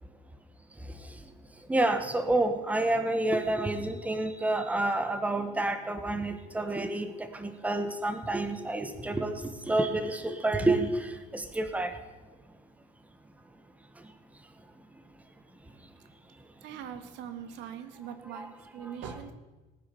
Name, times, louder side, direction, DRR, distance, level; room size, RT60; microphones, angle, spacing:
voice 1, 1.7-11.9 18.3-18.5 18.8-18.9, right 2 dB, 10° right, 8 dB, 1.4 m, -29 dB
voice 2, 16.6-19.3, right 8 dB, 85° right, 9 dB, 1.9 m, -42 dB
18.5 x 9.9 x 7.0 m, 1.2 s
cardioid pair, 160°, 18 cm